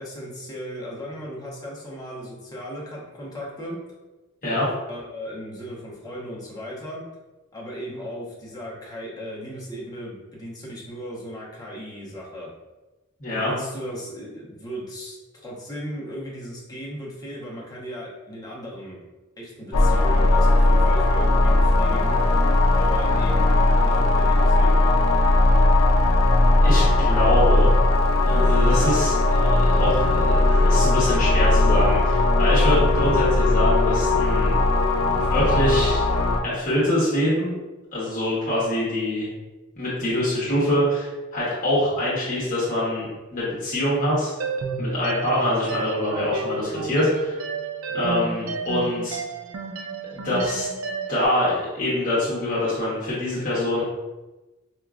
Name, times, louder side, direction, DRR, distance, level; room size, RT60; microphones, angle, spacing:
voice 1, 0.0-3.8 4.9-7.0 7.5-12.5 13.3-19.0 19.4-22.2 22.7-24.9 47.9-48.2, equal, 20° left, -6 dB, 1.0 m, -36 dB
voice 2, 13.2-13.5 26.6-27.7 28.2-34.5 35.1-36.0 36.4-37.5 37.9-39.3 39.8-44.3 44.8-47.4 47.9-49.2 50.1-50.7 51.1-53.8, left 1 dB, 40° left, -9 dB, 1.3 m, -24 dB
sound 1, 19.7-36.4, left 2 dB, 85° left, 0.5 m, -18 dB
sound 2, 44.4-51.2, right 4 dB, 75° right, 0.4 m, -31 dB
4.7 x 2.8 x 2.4 m, 1.1 s
head